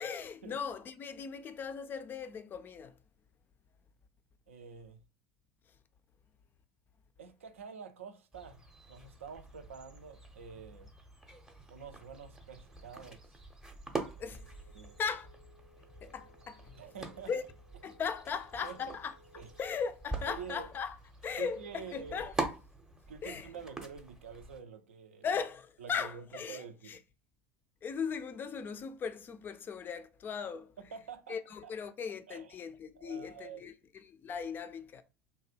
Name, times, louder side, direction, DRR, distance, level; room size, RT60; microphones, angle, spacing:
voice 1, 0.0-3.0 14.2-14.5 15.0-15.3 16.0-16.7 17.3-17.4 17.8-19.2 19.6-21.0 21.2-22.3 23.2-23.5 25.2-27.0 27.8-30.7 31.3-33.7 34.1-35.0, left 6 dB, 30° left, 0.3 m, -38 dB
voice 2, 4.5-5.0 7.2-8.6 8.9-10.9 11.7-13.3 14.7-15.0 16.8-17.3 17.9-18.0 18.6-19.0 19.3-19.5 20.2-20.7 21.4-22.3 23.1-25.3 25.8-27.0 30.8-31.7 32.3-32.6 33.0-33.7, right 6 dB, 75° right, 0.5 m, -47 dB
sound 1, 8.3-24.6, right 2 dB, 5° right, 0.6 m, -44 dB
sound 2, 14.2-20.4, left 2 dB, 90° left, 0.5 m, -63 dB
2.8 x 2.2 x 3.2 m
figure-of-eight pair, 75°, 7 cm